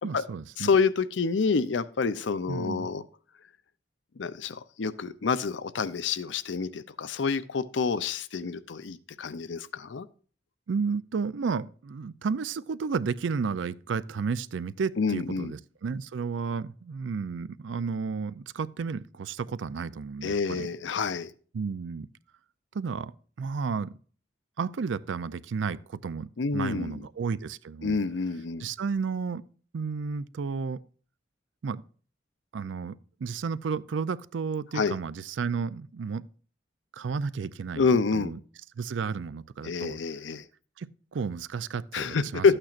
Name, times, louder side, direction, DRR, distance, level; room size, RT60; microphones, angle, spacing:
voice 1, 0.0-0.8 2.5-2.9 10.7-20.7 21.5-22.1 22.7-23.1 23.4-24.0 24.6-28.0 28.6-29.4 29.7-30.8 31.6-31.8 32.5-36.2 36.9-38.4 38.8-40.0 40.8-42.5, right 5 dB, 85° right, 0.4 m, -32 dB
voice 2, 0.6-3.0 4.2-10.1 15.0-15.5 20.2-21.3 26.4-27.0 27.8-28.7 34.7-35.0 37.8-38.3 39.6-40.4 41.9-42.6, left 5 dB, 80° left, 0.6 m, -27 dB
13.0 x 8.8 x 2.5 m
head